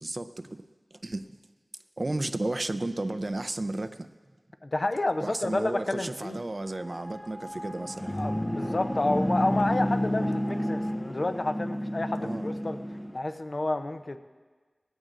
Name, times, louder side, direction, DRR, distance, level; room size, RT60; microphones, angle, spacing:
voice 1, 0.0-0.5 1.0-1.2 2.0-4.1 5.2-8.1 10.2-10.3 12.2-12.5, right 2 dB, 50° right, 10 dB, 0.5 m, -33 dB
voice 2, 4.6-6.4 8.2-12.8 13.1-14.2, left 2 dB, 55° left, 8 dB, 0.7 m, -30 dB
sound 1, 6.6-11.0, equal, 10° right, 0.8 m, -43 dB
sound 2, 7.6-13.2, equal, 20° left, 0.6 m, -30 dB
19.0 x 15.5 x 2.6 m, 1.4 s
wide cardioid pair, 50°, 0 cm